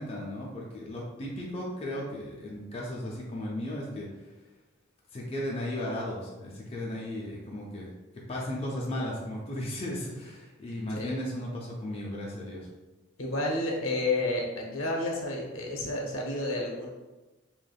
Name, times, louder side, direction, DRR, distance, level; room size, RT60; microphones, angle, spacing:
voice 1, 0.0-4.1 5.1-7.9 8.3-12.7, left 1 dB, 30° left, -4 dB, 0.4 m, -35 dB
voice 2, 13.2-16.9, left 2 dB, 75° left, -1 dB, 0.7 m, -30 dB
3.3 x 2.9 x 2.3 m, 1.1 s
head